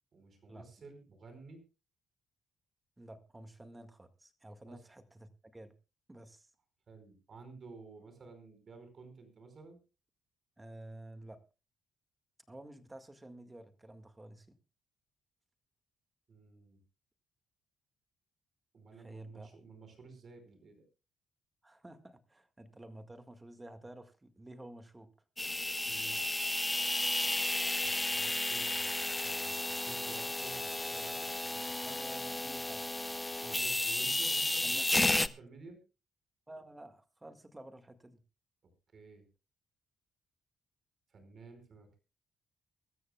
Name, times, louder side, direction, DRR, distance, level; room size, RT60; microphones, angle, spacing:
voice 1, 0.1-1.6 4.7-4.8 6.9-9.8 16.3-16.8 18.7-20.8 25.9-26.5 27.8-32.0 33.4-35.8 38.9-39.2 41.1-42.0, right 4 dB, 50° right, 8 dB, 4.9 m, -53 dB
voice 2, 3.0-5.7 6.1-6.5 10.6-11.4 12.5-14.5 19.0-19.6 21.6-25.1 31.8-32.8 34.6-35.2 36.5-38.2, right 1 dB, 15° right, 8 dB, 1.8 m, -51 dB
sound 1, 25.4-35.3, left 2 dB, 15° left, 0.6 m, -33 dB
23.5 x 13.5 x 2.3 m, 0.30 s
cardioid pair, 90°, 0 cm